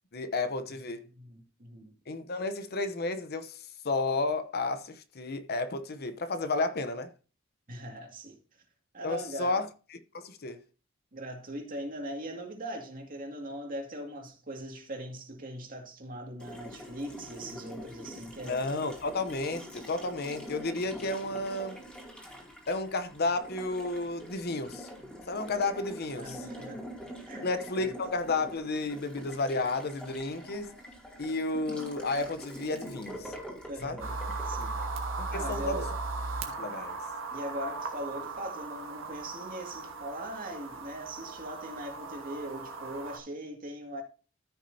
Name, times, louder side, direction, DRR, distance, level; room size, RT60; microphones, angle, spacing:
voice 1, 0.1-1.1 2.1-3.6 3.8-7.1 9.0-9.7 10.1-10.6 18.4-21.8 22.7-24.9 25.3-26.4 27.4-30.8 31.2-33.3 33.8-34.0 35.2-35.9 36.5-37.0, left 3 dB, 50° left, 0.8 m, -32 dB
voice 2, 1.1-1.9 7.7-8.4 8.9-9.6 11.1-18.6 26.1-26.8 27.3-27.5 27.8-27.9 33.7-34.2 34.4-34.8 35.3-36.0 37.3-44.0, equal, 45° right, 2.2 m, -40 dB
Water tap faucet, 16.4-35.6, equal, 5° left, 2.6 m, -45 dB
sound 1, 34.0-43.2, right 3 dB, 70° right, 1.8 m, -37 dB
14.0 x 6.2 x 2.8 m
head